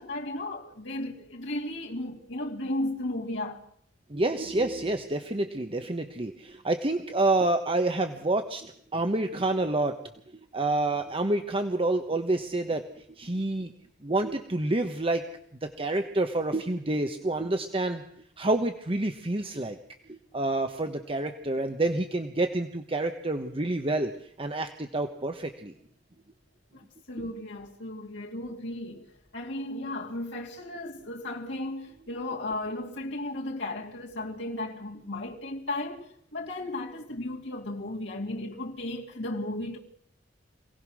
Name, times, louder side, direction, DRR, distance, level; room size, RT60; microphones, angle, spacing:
voice 1, 0.0-3.6 26.7-26.8 27.1-39.8, left 1 dB, 80° left, 2.5 m, -35 dB
voice 2, 4.1-9.9 10.5-13.7 14.0-15.2 15.6-18.0 18.4-19.8 20.1-24.1 24.4-25.7 27.2-27.3, right 2 dB, 30° right, 1.1 m, -28 dB
26.5 x 18.0 x 6.3 m
head